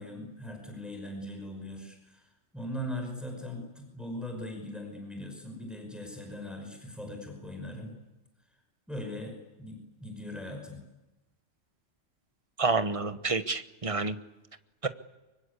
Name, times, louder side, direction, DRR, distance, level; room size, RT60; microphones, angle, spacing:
voice 1, 0.0-7.9 8.9-10.8, left 1 dB, ahead, 2 dB, 5.6 m, -40 dB
voice 2, 12.6-14.2 14.8-14.9, right 4 dB, 25° right, 10 dB, 1.1 m, -28 dB
25.0 x 23.5 x 8.4 m, 1.1 s
omnidirectional pair, 1.3 m